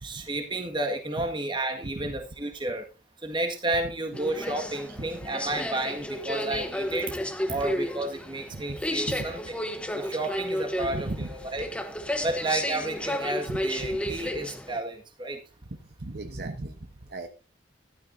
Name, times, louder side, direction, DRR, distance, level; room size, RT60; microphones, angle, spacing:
voice 1, 0.0-2.9 3.2-7.1 7.5-9.6 9.9-11.7 12.2-15.4, right 2 dB, 25° right, 3 dB, 1.8 m, -31 dB
sound 1, 4.1-14.8, left 1 dB, 5° left, 0.9 m, -32 dB
voice 2, 10.9-11.3 16.0-16.7 17.1-17.3, right 2 dB, 55° right, 6 dB, 1.0 m, -35 dB
13.5 x 12.5 x 2.7 m, 0.31 s
head